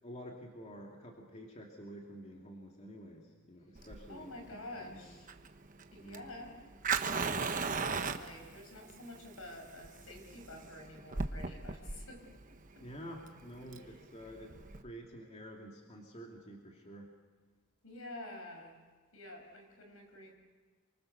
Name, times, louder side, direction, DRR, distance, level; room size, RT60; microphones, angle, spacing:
voice 1, 0.0-5.1 6.0-6.3 12.8-14.6 14.8-17.1, equal, 30° left, 0 dB, 2.6 m, -49 dB
Fire, 3.8-14.8, right 5 dB, 35° right, 1.1 m, -38 dB
voice 2, 4.1-5.3 5.9-6.6 7.7-12.9 17.8-18.8 19.1-20.3, left 1 dB, 75° left, 3 dB, 6.1 m, -49 dB
28.5 x 24.5 x 6.8 m, 1.4 s
head